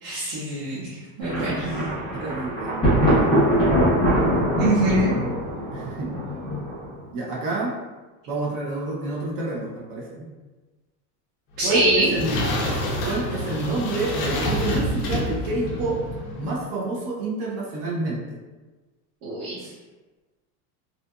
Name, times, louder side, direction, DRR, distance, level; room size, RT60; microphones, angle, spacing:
voice 1, 0.0-1.7 4.5-5.1 11.6-12.1 19.2-19.7, right 1 dB, 75° right, -10 dB, 1.0 m, -24 dB
Thunder, 1.2-7.0, equal, 10° left, 0.7 m, -22 dB
voice 2, 1.3-1.9 2.1-3.6 5.7-6.1 7.1-7.7 8.3-10.3 11.6-12.3 13.0-16.0 16.4-18.2, right 2 dB, 40° right, -4 dB, 0.5 m, -29 dB
sound 1, 11.6-16.5, left 1 dB, 40° left, 0.4 m, -28 dB
2.7 x 2.4 x 2.2 m, 1.2 s
supercardioid pair, 170°, 45 cm